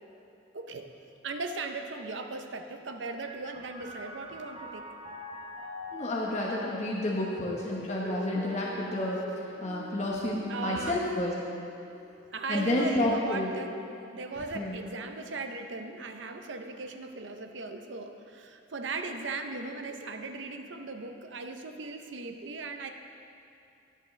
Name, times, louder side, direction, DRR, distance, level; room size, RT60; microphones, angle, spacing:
voice 1, 0.5-0.9 1.2-4.8 8.3-8.6 10.5-11.0 12.3-13.7 14.0-22.9, right 3 dB, 75° right, 6 dB, 0.7 m, -38 dB
sound 1, 3.3-16.5 17.4-18.1, left 1 dB, 35° right, 2.5 m, -47 dB
voice 2, 5.9-9.2 9.6-11.3 12.5-13.5 14.5-14.7, left 1 dB, 35° left, -5 dB, 1.1 m, -30 dB
18.5 x 7.1 x 3.3 m, 2.6 s
head